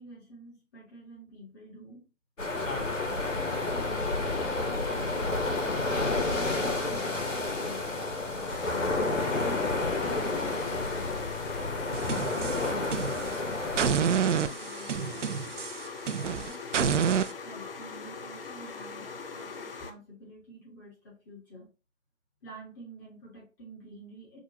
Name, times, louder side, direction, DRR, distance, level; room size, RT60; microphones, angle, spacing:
voice 1, 0.0-2.1 2.7-5.1 5.8-8.0 8.7-11.1 11.9-15.3 16.1-17.1 17.4-21.7 22.4-24.4, right 1 dB, 15° left, -3 dB, 1.2 m, -48 dB
sound 1, 2.4-13.9, left 2 dB, 85° left, 1.2 m, -30 dB
sound 2, 8.5-19.9, left 4 dB, 50° left, 0.5 m, -41 dB
sound 3, 11.9-13.4 13.8-17.3, right 7 dB, 70° right, 0.5 m, -29 dB
6.0 x 2.4 x 2.8 m, 0.32 s
figure-of-eight pair, 150°, 37 cm